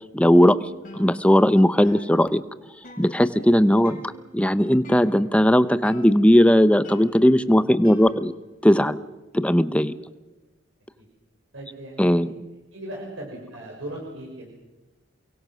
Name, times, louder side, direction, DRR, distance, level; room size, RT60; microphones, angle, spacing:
voice 1, 0.1-0.6 0.9-2.4 3.0-8.3 8.6-9.0 9.3-9.9 12.0-12.3, equal, 5° left, 13 dB, 0.8 m, -18 dB
sound 1, 0.8-1.6 1.8-3.5 3.8-4.4 4.8-5.5 5.8-6.5 6.8-8.5, left 2 dB, 40° left, 5.9 m, -46 dB
voice 2, 7.2-8.2 10.0-10.1 11.0-11.1 11.5-12.4 12.7-14.5, right 1 dB, 70° right, -2 dB, 6.0 m, -39 dB
29.0 x 22.5 x 6.3 m, 1.1 s
head